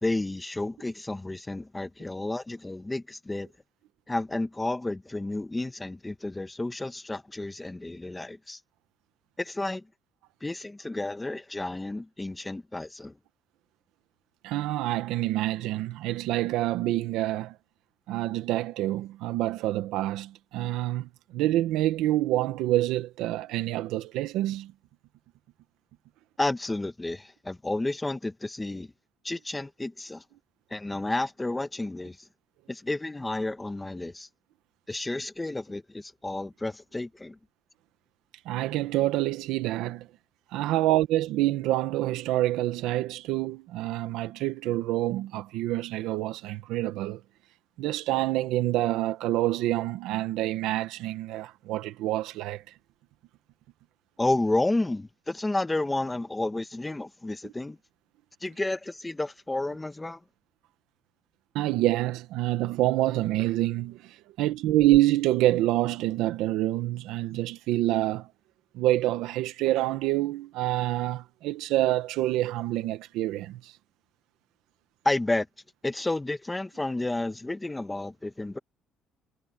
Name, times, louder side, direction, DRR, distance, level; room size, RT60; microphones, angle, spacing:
voice 1, 0.0-3.5 4.1-8.6 9.4-9.8 10.4-13.2 26.4-28.9 29.2-30.2 30.7-32.3 32.7-34.3 34.9-37.4 54.2-57.8 58.4-60.2 75.0-75.5 75.8-78.6, left 2 dB, 10° left, 1.6 m, -31 dB
voice 2, 14.4-17.5 18.1-24.7 38.4-40.1 40.5-47.2 47.8-52.6 61.5-68.3 68.7-73.7, right 15 dB, 90° right, 1.5 m, -27 dB
cardioid pair, 140°, 0 cm